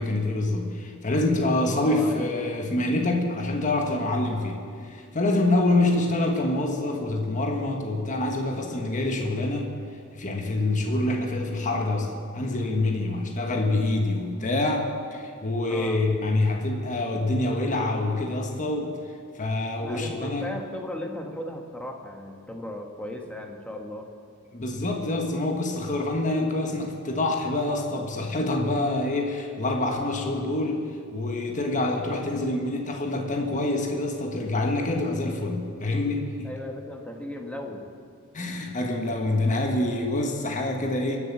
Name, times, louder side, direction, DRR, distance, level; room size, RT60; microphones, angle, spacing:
voice 1, 0.0-9.7 10.1-19.0 19.3-20.5 24.5-36.5 38.3-41.2, left 2 dB, 35° left, 2 dB, 1.4 m, -26 dB
voice 2, 1.8-2.3 5.8-6.0 15.7-16.0 19.8-24.1 32.4-32.6 36.4-37.8, left 1 dB, 5° left, 2 dB, 1.3 m, -36 dB
22.0 x 7.4 x 7.4 m, 2.3 s
head